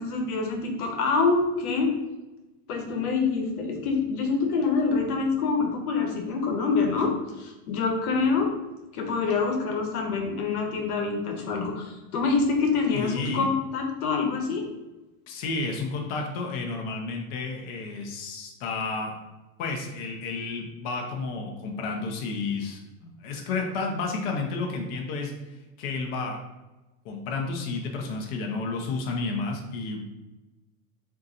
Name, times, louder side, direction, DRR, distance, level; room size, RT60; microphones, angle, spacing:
voice 1, 0.0-1.9 2.7-7.1 7.4-8.5 8.9-14.6 23.0-23.1, left 4 dB, 85° left, 3 dB, 1.0 m, -26 dB
voice 2, 12.9-13.5 15.3-19.1 19.6-22.8 23.2-25.3 25.8-26.4 27.0-30.0, left 3 dB, 45° left, 1 dB, 0.6 m, -31 dB
3.8 x 2.7 x 4.0 m, 1.1 s
supercardioid pair, 160°, 44 cm